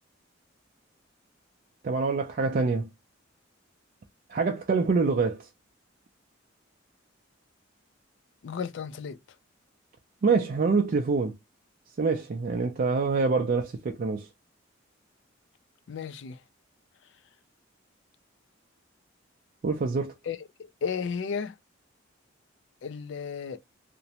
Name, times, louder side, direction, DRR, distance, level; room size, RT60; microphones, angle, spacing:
voice 1, 1.8-2.9 4.3-5.5 10.2-11.4 12.0-14.3 19.6-20.1, right 4 dB, 45° right, 0.4 m, -25 dB
voice 2, 8.4-9.2 15.9-16.4 20.3-21.5 22.8-23.6, left 6 dB, 65° left, 0.4 m, -34 dB
2.5 x 2.0 x 2.7 m
head